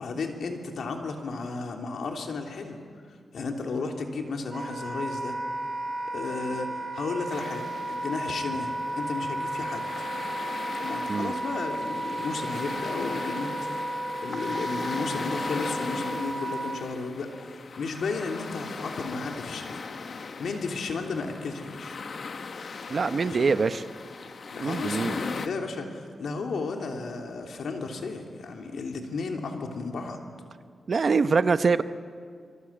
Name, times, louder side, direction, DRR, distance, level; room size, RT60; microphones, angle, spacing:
voice 1, 0.0-2.8 3.3-5.4 6.1-9.9 10.8-13.8 14.2-19.8 20.4-22.0 23.2-23.5 24.5-30.2, left 4 dB, 80° left, 3 dB, 3.2 m, -33 dB
Wind instrument woodwind instrument, 4.5-16.8, right 1 dB, 30° right, 7.9 m, -33 dB
sound 1, 7.3-25.5, left 4 dB, 60° left, 1.4 m, -39 dB
voice 2, 22.9-23.8 24.6-25.2 30.9-31.8, right 4 dB, 50° right, 12 dB, 0.8 m, -24 dB
27.0 x 22.5 x 8.8 m, 2.2 s
wide cardioid pair, 105°, 0 cm